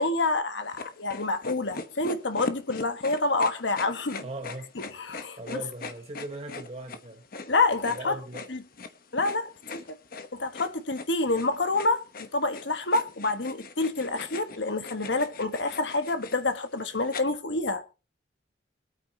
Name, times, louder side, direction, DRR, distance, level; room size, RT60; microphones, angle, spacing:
voice 1, 0.0-4.2 4.8-5.6 7.5-8.2 8.5-8.6 9.1-10.0 10.3-17.8, left 3 dB, 70° left, 1.3 m, -28 dB
sound 1, 0.7-17.2, left 3 dB, 50° left, 1.0 m, -41 dB
voice 2, 4.2-4.7 5.4-7.2 7.9-8.5, right 2 dB, 35° right, 1.1 m, -39 dB
24.0 x 8.9 x 2.9 m
head